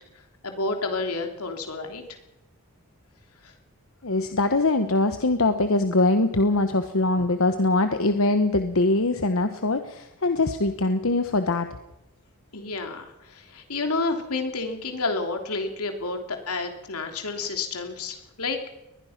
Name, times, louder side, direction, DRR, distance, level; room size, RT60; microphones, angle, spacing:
voice 1, 0.4-2.0 3.4-3.5 12.5-18.6, left 3 dB, 90° left, 5 dB, 3.2 m, -30 dB
voice 2, 4.0-11.7, left 2 dB, 70° left, 8 dB, 1.1 m, -22 dB
22.0 x 20.5 x 5.9 m, 0.94 s
head